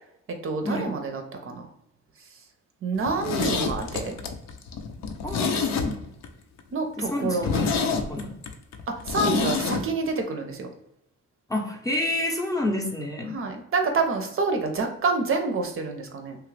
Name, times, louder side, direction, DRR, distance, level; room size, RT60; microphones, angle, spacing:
voice 1, 0.3-1.7 2.8-4.2 6.7-8.1 8.9-10.7 13.3-16.4, right 3 dB, 45° right, 4 dB, 0.6 m, -28 dB
Zipper (clothing), 3.0-6.3 6.6-6.7 7.0-7.1 7.4-9.8 10.1-10.2, left 5 dB, 65° left, 0.5 m, -27 dB
voice 2, 5.2-5.9 7.0-8.3 11.5-13.4, left 1 dB, 10° left, 0 dB, 0.6 m, -29 dB
3.0 x 2.4 x 3.2 m, 0.82 s
cardioid pair, 90°, 30 cm